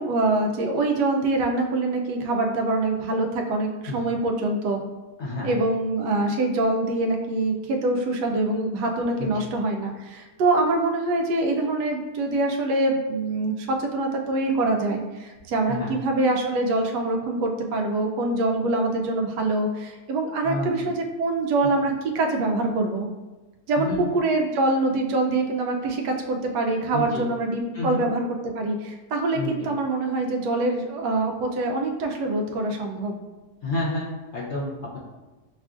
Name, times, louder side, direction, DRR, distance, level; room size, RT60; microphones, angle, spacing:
voice 1, 0.0-4.8 5.4-23.1 23.7-28.2 28.5-33.2, right 2 dB, 80° right, 2 dB, 1.2 m, -24 dB
voice 2, 5.2-5.5 9.2-9.5 15.7-15.9 20.4-20.7 23.8-24.0 26.9-27.2 27.7-28.0 29.3-29.5 33.6-35.0, left 2 dB, 55° left, -6 dB, 0.8 m, -30 dB
6.3 x 2.4 x 2.4 m, 1.2 s
omnidirectional pair, 1.8 m